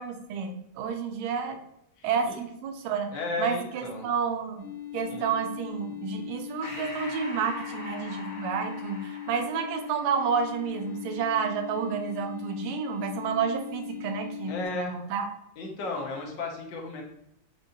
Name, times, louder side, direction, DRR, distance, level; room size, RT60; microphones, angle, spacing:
voice 1, 0.0-1.6 2.0-4.7 4.9-15.3, right 6 dB, 80° right, 5 dB, 1.5 m, -30 dB
voice 2, 2.0-2.4 3.1-4.1 5.1-5.3 14.5-15.0 15.6-17.0, left 3 dB, 65° left, 0 dB, 1.4 m, -34 dB
sound 1, 4.6-14.7, left 13 dB, 30° right, 0.7 m, -40 dB
Breathing, 6.6-11.5, left 2 dB, 50° left, 0.9 m, -43 dB
5.1 x 2.6 x 2.6 m, 0.76 s
omnidirectional pair, 2.4 m